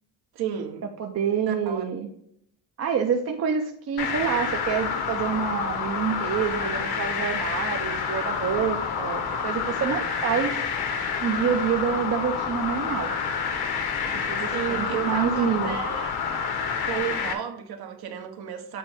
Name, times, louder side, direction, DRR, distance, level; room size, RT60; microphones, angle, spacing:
voice 1, 0.3-0.8 1.5-1.8 14.5-16.1 16.8-18.8, right 9 dB, 70° right, 1.1 m, -32 dB
voice 2, 1.0-2.1 2.8-10.6 11.2-13.1 14.1-15.8, right 7 dB, 40° right, 0.6 m, -27 dB
sound 1, 4.0-17.3, left 6 dB, 70° left, 1.1 m, -28 dB
7.8 x 4.0 x 3.5 m
cardioid pair, 170°, 39 cm